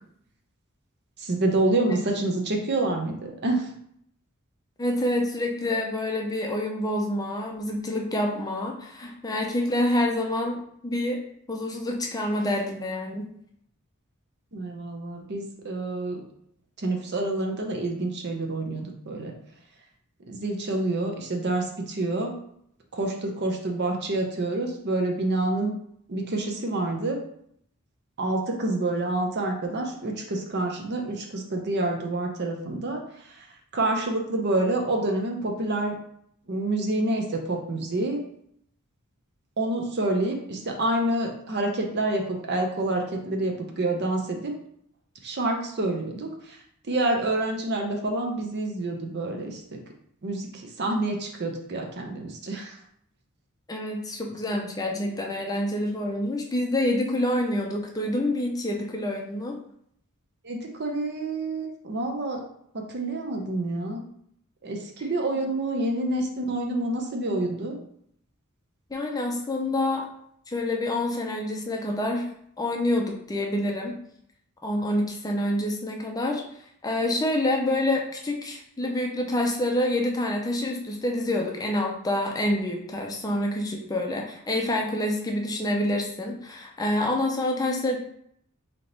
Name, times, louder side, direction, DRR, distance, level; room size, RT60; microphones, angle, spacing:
voice 1, 1.2-3.7 14.5-16.2 16.8-19.3 20.3-22.3 22.9-25.7 26.1-27.2 28.2-33.0 33.7-35.9 36.5-38.2 39.6-44.5 45.2-46.6 46.9-49.8 50.2-52.8 60.4-62.4 62.7-64.0 64.6-67.8, right 2 dB, 50° right, 2 dB, 0.7 m, -27 dB
voice 2, 4.8-11.2 11.5-13.3 53.7-59.6 68.9-70.1 70.5-72.3 72.6-74.0 74.6-76.4 76.8-88.0, left 1 dB, 15° left, 1 dB, 0.5 m, -27 dB
3.5 x 2.9 x 3.9 m, 0.69 s
head